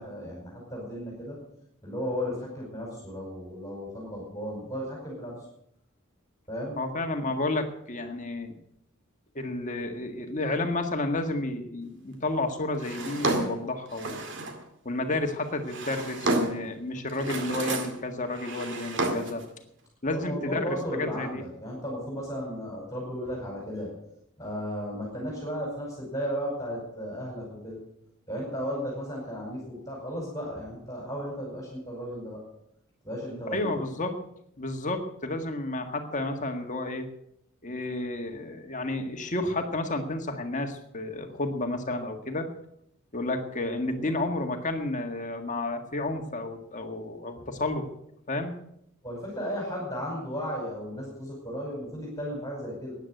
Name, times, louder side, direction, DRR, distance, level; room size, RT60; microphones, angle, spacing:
voice 1, 0.0-1.4 1.8-5.4 6.5-6.8 20.1-23.9 24.4-27.8 28.3-32.4 33.0-33.7 43.9-44.1 47.4-47.5 49.0-53.0, equal, 15° left, -3 dB, 5.2 m, -35 dB
voice 2, 6.8-8.5 9.4-14.2 14.9-19.4 20.0-21.4 33.5-34.1 34.6-37.1 37.6-42.5 43.1-47.9 48.3-48.5, left 2 dB, 35° left, 5 dB, 1.8 m, -31 dB
Drawer open or close, 12.8-14.6 15.4-16.7 17.1-18.0 18.3-19.4, right 2 dB, 60° right, 2.1 m, -31 dB
14.0 x 9.9 x 7.9 m, 0.76 s
head